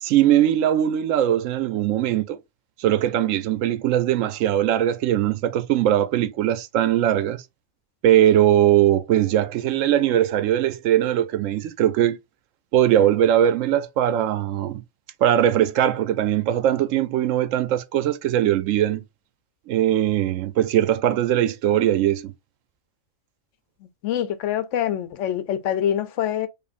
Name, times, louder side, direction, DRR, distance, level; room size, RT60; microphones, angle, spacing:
voice 1, 0.0-2.4 2.8-7.4 8.0-12.2 12.7-14.8 15.2-19.0 19.7-22.3, right 11 dB, 85° right, 0.9 m, -20 dB
voice 2, 24.0-26.5, left 10 dB, 75° left, 0.9 m, -25 dB
5.1 x 2.6 x 2.5 m
omnidirectional pair, 1.3 m